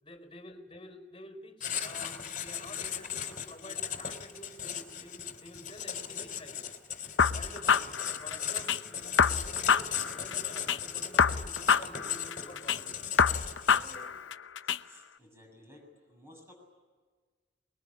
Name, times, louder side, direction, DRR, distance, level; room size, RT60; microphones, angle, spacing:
voice 1, 0.0-6.7 7.3-12.9, left 1 dB, 25° left, 5 dB, 4.3 m, -49 dB
Writing, 1.6-14.2, left 8 dB, 45° left, 2.9 m, -37 dB
sound 1, 7.2-8.8 9.2-10.8 11.2-12.8 13.2-14.8, left 6 dB, 80° left, 0.8 m, -26 dB
voice 2, 14.6-16.5, left 1 dB, 15° right, 0 dB, 7.2 m, -56 dB
24.5 x 21.5 x 9.9 m, 1.4 s
head